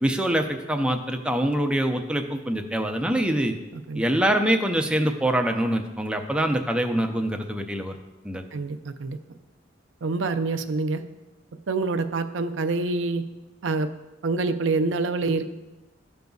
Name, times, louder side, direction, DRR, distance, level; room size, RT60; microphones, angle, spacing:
voice 1, 0.0-3.5 4.0-7.9 8.2-8.4, right 1 dB, 5° right, 4 dB, 0.5 m, -24 dB
voice 2, 8.5-9.2 10.0-11.0 11.7-13.2 13.6-13.9 14.2-15.4, right 3 dB, 75° right, 9 dB, 0.5 m, -26 dB
13.5 x 5.2 x 2.3 m, 1.1 s
head